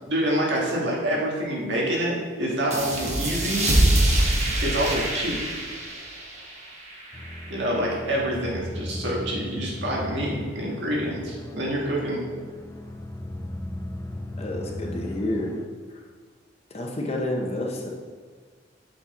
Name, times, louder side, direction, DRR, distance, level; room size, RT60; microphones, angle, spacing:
voice 1, 0.1-3.7 4.6-5.4 7.5-12.2, right 1 dB, 70° right, -4 dB, 1.8 m, -27 dB
sound 1, 2.7-7.9, right 1 dB, 40° right, 1.3 m, -25 dB
sound 2, 7.1-15.7, left 1 dB, 15° left, 0.4 m, -37 dB
voice 2, 14.4-15.5 16.7-17.9, left 1 dB, 35° left, 0 dB, 0.9 m, -29 dB
7.5 x 4.3 x 4.2 m, 1.5 s
head